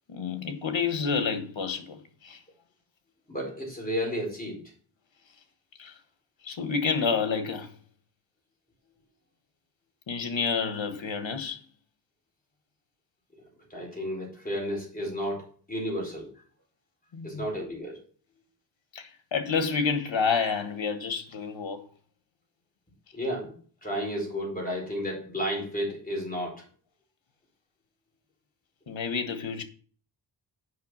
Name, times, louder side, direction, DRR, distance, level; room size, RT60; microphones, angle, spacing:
voice 1, 0.1-2.4 5.8-5.9 6.4-7.7 10.1-11.6 17.1-17.5 18.9-21.8 28.9-29.6, left 5 dB, 80° left, 1.5 m, -29 dB
voice 2, 3.3-4.6 13.7-16.3 17.2-18.0 23.1-23.6 23.8-26.6, equal, 20° left, 4.6 m, -32 dB
8.1 x 5.8 x 6.2 m
wide cardioid pair, 125°, 46 cm